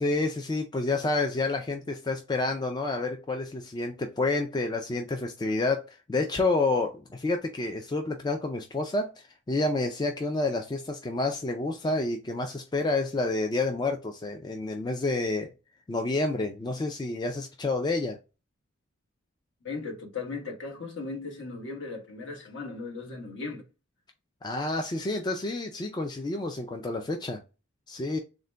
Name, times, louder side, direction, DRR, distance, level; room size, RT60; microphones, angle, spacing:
voice 1, 0.0-15.5 15.9-18.2 24.4-27.4 27.9-28.2, left 2 dB, 20° left, 0.3 m, -29 dB
voice 2, 19.6-23.6, left 4 dB, 60° left, 1.1 m, -37 dB
3.8 x 2.1 x 3.2 m
head